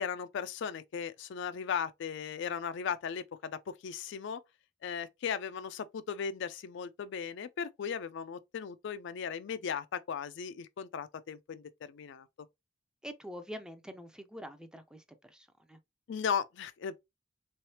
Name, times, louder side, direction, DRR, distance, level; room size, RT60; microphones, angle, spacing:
voice 1, 0.0-4.4 4.8-12.3 16.1-17.0, left 7 dB, 65° left, 0.4 m, -37 dB
voice 2, 13.0-15.8, equal, 5° right, 0.4 m, -46 dB
3.5 x 3.2 x 2.8 m
head